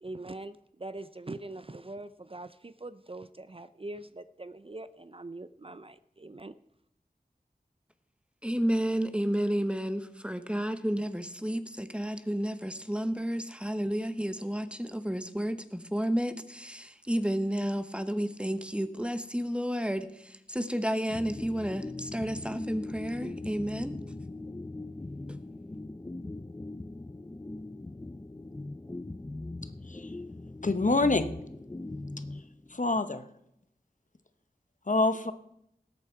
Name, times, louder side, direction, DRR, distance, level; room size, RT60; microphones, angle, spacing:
voice 1, 0.0-6.5, right 2 dB, 35° right, 13 dB, 0.5 m, -43 dB
voice 2, 8.4-24.0 25.3-25.4, equal, 5° right, 10 dB, 1.0 m, -31 dB
sound 1, 21.1-33.0, left 2 dB, 15° left, 0.4 m, -40 dB
voice 3, 30.6-31.3 32.7-33.2 34.9-35.3, left 2 dB, 50° left, 11 dB, 0.9 m, -26 dB
19.0 x 8.4 x 4.5 m, 0.78 s
wide cardioid pair, 50°, 16 cm